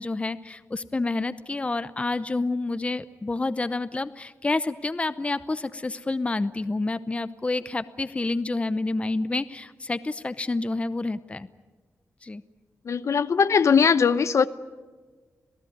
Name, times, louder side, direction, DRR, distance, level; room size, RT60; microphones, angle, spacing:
voice 1, 0.0-11.5 12.2-12.4, left 2 dB, 20° left, 14 dB, 0.8 m, -28 dB
voice 2, 12.8-14.5, left 6 dB, 60° left, 13 dB, 0.9 m, -20 dB
27.0 x 18.0 x 9.5 m, 1.4 s
wide cardioid pair, 120°, 6 cm